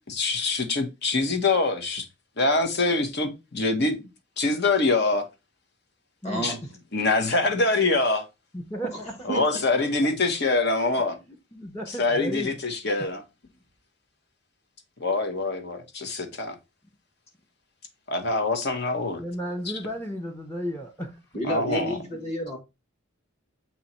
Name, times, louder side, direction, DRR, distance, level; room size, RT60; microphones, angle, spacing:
voice 1, 0.1-2.0 2.4-4.0 4.4-5.2 6.4-6.5 6.9-8.2 9.2-11.2 12.0-13.2 15.0-16.6 18.1-19.2 21.4-21.9, left 3 dB, 50° left, 1.2 m, -24 dB
voice 2, 6.2-6.6 9.3-9.4 21.3-22.6, right 1 dB, 30° left, 1.9 m, -30 dB
voice 3, 8.5-9.1 11.3-12.6 13.0-13.1 19.2-21.2 22.2-22.3, equal, 10° left, 0.8 m, -34 dB
7.4 x 3.0 x 4.2 m
head